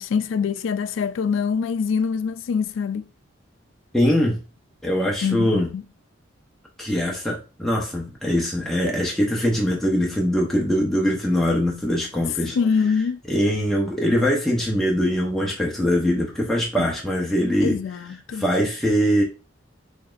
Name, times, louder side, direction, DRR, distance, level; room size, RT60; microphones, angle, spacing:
voice 1, 0.0-3.1 5.2-5.8 12.4-13.2 16.8-16.9 17.6-18.5, left 6 dB, 80° left, 0.3 m, -24 dB
voice 2, 3.9-4.4 4.8-5.7 6.8-12.6 13.3-17.8 18.3-19.2, equal, ahead, 0.7 m, -22 dB
4.1 x 3.2 x 2.4 m
head